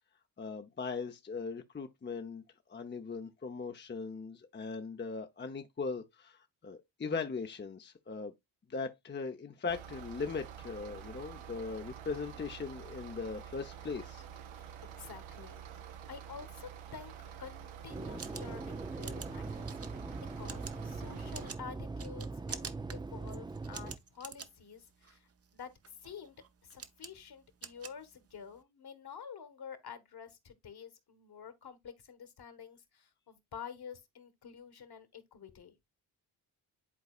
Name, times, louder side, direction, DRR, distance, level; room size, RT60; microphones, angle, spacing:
voice 1, 0.4-2.4 2.7-8.3 8.7-14.2, left 4 dB, 25° left, 0.7 m, -39 dB
sound 1, 9.7-21.6, right 9 dB, 75° right, 1.0 m, -48 dB
voice 2, 14.6-15.6 16.1-17.1 17.4-25.3 25.5-26.3 26.6-35.7, left 7 dB, 50° left, 1.6 m, -49 dB
Airplane Small Propeller Take off, 17.9-24.0, right 3 dB, 10° right, 0.4 m, -41 dB
sound 2, 18.0-28.6, right 6 dB, 30° right, 0.8 m, -49 dB
11.0 x 4.0 x 2.4 m
hypercardioid pair, 50°, 48 cm